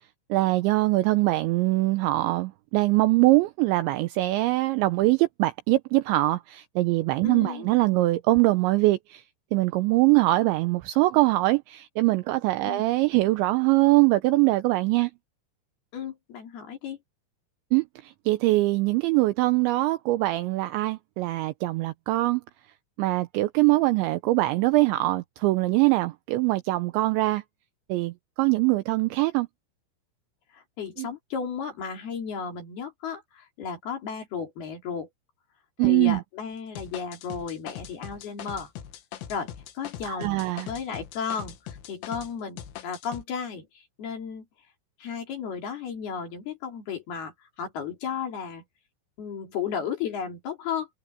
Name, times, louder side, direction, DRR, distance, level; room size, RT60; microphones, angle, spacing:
voice 1, 0.3-9.2 9.5-15.1 17.7-22.4 23.0-27.4 27.9-29.5 31.0-31.1 35.8-36.2 40.1-40.7, right 19 dB, 90° right, 2.6 m, -23 dB
voice 2, 7.2-7.8 12.6-12.8 15.9-17.0 30.5-35.1 35.8-38.7 39.3-39.5 39.7-44.5 45.0-48.6 49.2-50.9, left 7 dB, 50° left, 5.0 m, -34 dB
sound 1, 36.8-42.3 42.6-43.2, left 10 dB, 75° left, 4.3 m, -41 dB
omnidirectional pair, 6.0 m